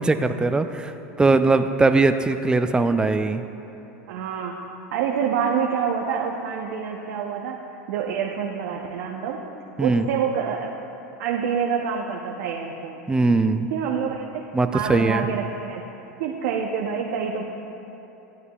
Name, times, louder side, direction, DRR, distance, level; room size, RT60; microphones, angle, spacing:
voice 1, 0.1-3.4 9.8-10.1 13.1-13.7 14.5-15.3, right 3 dB, 10° right, 9 dB, 0.4 m, -20 dB
voice 2, 4.1-4.6 4.9-7.6 7.9-9.4 9.8-10.7 11.2-13.0 13.7-14.4 14.7-15.8 16.2-17.5, right 7 dB, 65° right, 0 dB, 0.7 m, -27 dB
12.5 x 9.3 x 2.3 m, 2.9 s
hypercardioid pair, 95°, 8 cm